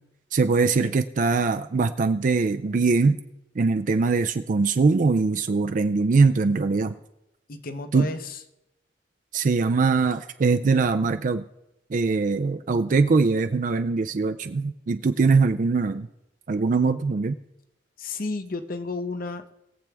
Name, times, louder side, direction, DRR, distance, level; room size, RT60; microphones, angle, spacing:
voice 1, 0.3-3.2 3.6-7.0 7.9-8.1 9.3-11.4 11.9-16.1 16.5-17.4, right 4 dB, 45° right, 8 dB, 0.4 m, -22 dB
voice 2, 7.5-8.4 18.0-19.5, left 3 dB, 55° left, 9 dB, 0.9 m, -32 dB
21.0 x 7.4 x 3.4 m, 0.89 s
head